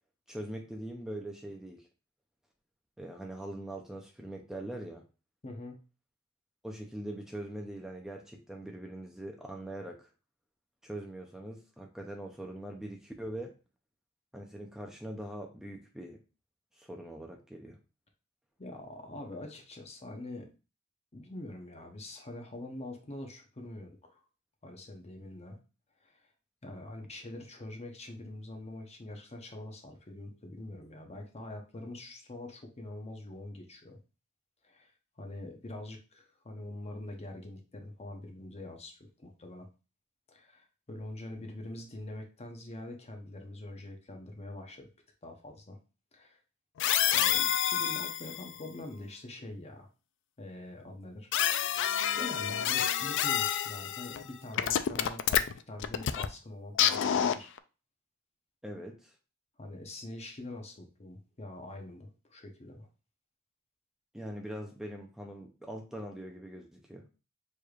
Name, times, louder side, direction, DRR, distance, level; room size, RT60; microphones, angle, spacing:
voice 1, 0.3-1.9 3.0-5.0 6.6-10.1 10.8-13.5 14.3-16.2 16.7-17.8 58.6-59.2 64.1-67.0, right 1 dB, ahead, 1 dB, 0.5 m, -42 dB
voice 2, 5.4-5.8 18.6-20.5 21.1-24.2 24.6-25.6 26.0-26.3 26.6-34.0 34.6-39.7 40.3-44.9 45.2-45.8 46.1-46.4 47.1-49.9 50.4-51.3 51.7-51.9 52.1-57.5 59.6-62.9, left 1 dB, 30° left, 3 dB, 0.8 m, -44 dB
sound 1, 46.8-48.5 51.3-54.2 54.6-56.3 56.8-57.6, left 10 dB, 60° left, 0.4 m, -28 dB
6.8 x 3.2 x 2.4 m, 0.33 s
head